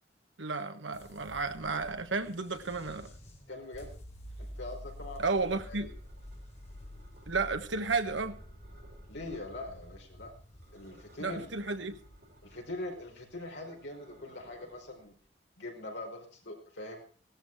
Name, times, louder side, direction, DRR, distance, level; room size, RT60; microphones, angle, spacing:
voice 1, 0.4-3.1 5.2-5.9 7.3-8.4 11.2-12.0, right 4 dB, 85° right, 9 dB, 1.4 m, -32 dB
sound 1, 0.9-15.1, equal, 35° left, 3.8 m, -49 dB
voice 2, 3.5-4.0 4.4-5.2 5.7-5.8 9.1-10.3 10.7-11.5 12.4-15.1 15.6-17.0, left 2 dB, 75° left, 2 dB, 5.1 m, -42 dB
sound 2, 5.3-7.5 8.0-10.0 10.3-14.8, right 1 dB, 55° right, 5.1 m, -60 dB
16.5 x 13.0 x 4.7 m, 0.40 s
head